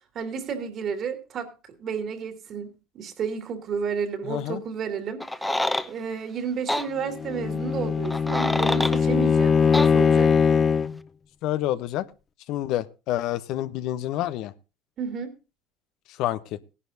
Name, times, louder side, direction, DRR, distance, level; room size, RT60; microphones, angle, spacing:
voice 1, 0.1-1.5 1.8-5.2 5.9-10.3 15.0-15.3, right 6 dB, 50° right, 7 dB, 2.7 m, -32 dB
voice 2, 4.2-4.6 11.4-12.1 12.5-14.5 16.1-16.6, left 13 dB, 65° left, 14 dB, 0.8 m, -28 dB
sound 1, 5.2-5.9 6.7-6.9 8.0-9.0 9.7-9.9, left 1 dB, 5° left, 1.0 m, -26 dB
Bowed string instrument, 7.1-11.0, left 6 dB, 35° left, 0.5 m, -21 dB
19.0 x 11.0 x 2.7 m, 0.30 s
hypercardioid pair, 80°, 0 cm